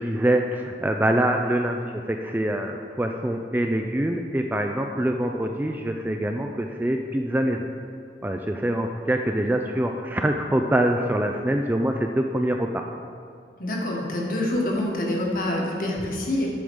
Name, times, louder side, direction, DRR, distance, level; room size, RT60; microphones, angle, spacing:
voice 1, 0.0-7.7 8.2-12.8, right 1 dB, 10° right, 4 dB, 0.3 m, -25 dB
voice 2, 13.6-16.5, left 1 dB, 50° left, -2 dB, 1.4 m, -26 dB
8.7 x 5.0 x 6.2 m, 2.2 s
head